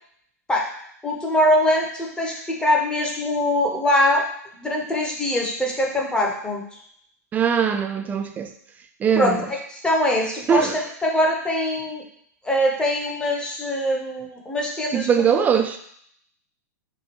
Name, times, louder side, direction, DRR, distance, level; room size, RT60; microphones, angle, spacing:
voice 1, 1.0-4.2 4.6-6.6 9.1-9.4 9.7-12.0 12.4-15.3, left 1 dB, 10° left, -1 dB, 0.8 m, -22 dB
voice 2, 7.3-8.5 9.0-9.5 10.5-10.8 14.9-15.8, right 7 dB, 20° right, 7 dB, 0.3 m, -21 dB
4.8 x 2.3 x 3.0 m, 0.66 s
figure-of-eight pair, 100°, 9 cm